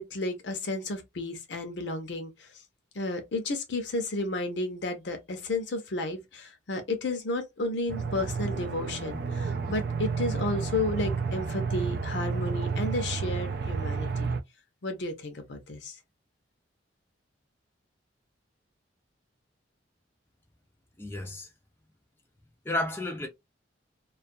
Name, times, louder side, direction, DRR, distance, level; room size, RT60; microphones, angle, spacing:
voice 1, 0.0-2.5 2.9-14.3 14.8-16.0, left 2 dB, 65° left, 0.7 m, -32 dB
Aircraft, 7.9-14.4, right 5 dB, 55° right, 0.3 m, -31 dB
voice 2, 21.0-21.5 22.6-23.3, left 1 dB, 10° left, 0.5 m, -32 dB
2.3 x 2.2 x 2.5 m
head